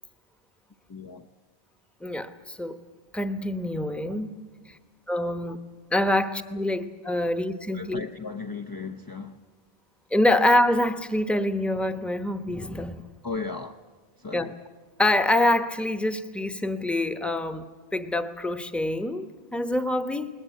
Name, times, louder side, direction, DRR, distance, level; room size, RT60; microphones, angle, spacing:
voice 1, 0.9-1.3 4.1-4.2 5.5-5.6 7.7-9.4 13.2-13.8 14.2-14.5, left 4 dB, 25° left, 0.6 m, -36 dB
voice 2, 2.0-2.8 3.1-4.3 5.1-5.6 5.9-8.0 10.1-13.0 14.3-14.5 15.0-17.7 17.9-20.3, left 1 dB, ahead, 0.9 m, -25 dB
20.5 x 20.0 x 9.2 m
omnidirectional pair, 1.1 m